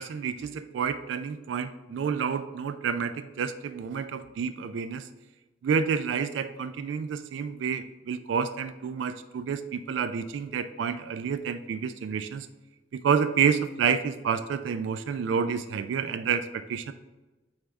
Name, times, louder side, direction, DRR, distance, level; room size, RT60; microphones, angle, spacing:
voice 1, 0.0-5.1 5.6-12.5 12.9-16.9, right 6 dB, 80° right, 11 dB, 0.3 m, -29 dB
8.7 x 3.4 x 3.5 m, 1.1 s
head